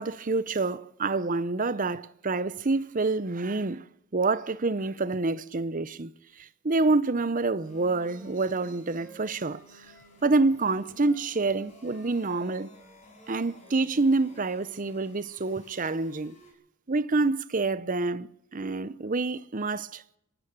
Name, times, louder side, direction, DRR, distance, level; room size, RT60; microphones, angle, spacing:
voice 1, 0.0-3.8 4.1-6.1 6.4-9.9 10.2-12.7 13.3-16.4 16.9-20.0, right 3 dB, 35° right, 0.7 m, -27 dB
sound 1, 7.6-16.5, left 1 dB, 30° left, 7.7 m, -54 dB
Wind instrument woodwind instrument, 7.6-10.5 10.9-14.3, right 1 dB, 5° left, 5.0 m, -56 dB
23.0 x 13.0 x 8.7 m
head